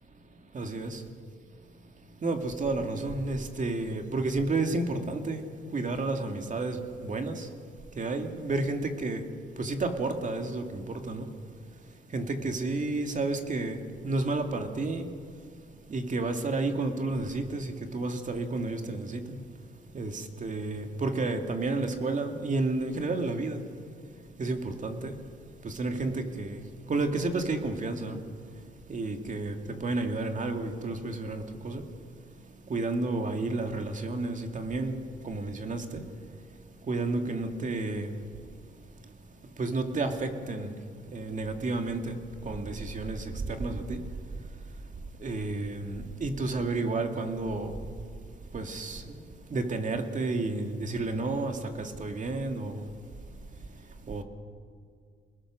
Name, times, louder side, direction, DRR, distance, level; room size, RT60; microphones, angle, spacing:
voice 1, 0.5-1.0 2.2-5.4 5.7-7.5 8.0-9.2 9.6-11.3 12.1-15.1 15.9-19.4 19.9-23.6 24.4-25.2 25.6-26.6 26.9-28.2 28.9-31.8 32.7-35.0 35.2-36.0 36.9-38.1 39.6-40.7 41.1-42.2 42.4-44.0 45.2-47.8 48.5-49.2 49.5-52.9 54.1-54.2, right 2 dB, 40° right, 2.5 m, -31 dB
28.5 x 20.5 x 6.5 m
cardioid pair, 90°, 20 cm